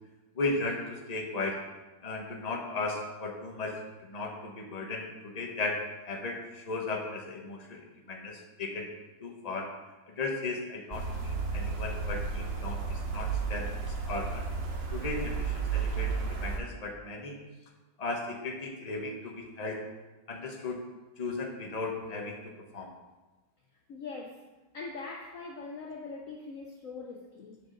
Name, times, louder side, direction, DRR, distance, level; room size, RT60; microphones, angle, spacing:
voice 1, 0.3-1.6 2.0-5.8 6.1-7.8 8.1-8.9 9.2-9.7 10.1-14.4 14.9-17.4 18.0-19.8 20.3-20.8 21.2-22.9, left 3 dB, 25° left, 0 dB, 1.1 m, -36 dB
sound 1, 10.9-16.6, right 5 dB, 40° right, 1.1 m, -33 dB
voice 2, 23.9-24.5 24.7-27.6, left 4 dB, 55° left, 0 dB, 1.0 m, -42 dB
8.2 x 5.1 x 6.4 m, 1.2 s
omnidirectional pair, 2.0 m